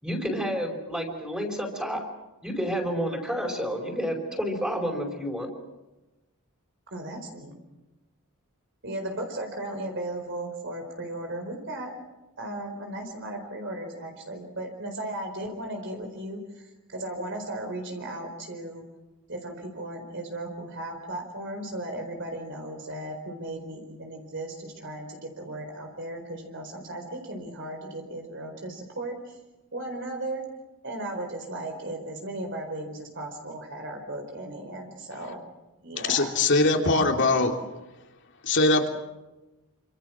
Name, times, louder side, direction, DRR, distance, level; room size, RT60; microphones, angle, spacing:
voice 1, 0.0-2.0 2.4-5.5, equal, 5° right, -1 dB, 4.9 m, -30 dB
voice 2, 6.9-7.6 8.8-11.9 12.4-18.8 19.3-29.4 29.7-30.4 30.8-35.4 35.8-36.3, right 1 dB, 55° right, 3 dB, 4.4 m, -36 dB
voice 3, 36.0-37.6 38.4-38.9, left 2 dB, 55° left, 3 dB, 3.3 m, -22 dB
28.0 x 26.5 x 6.2 m, 1.1 s
head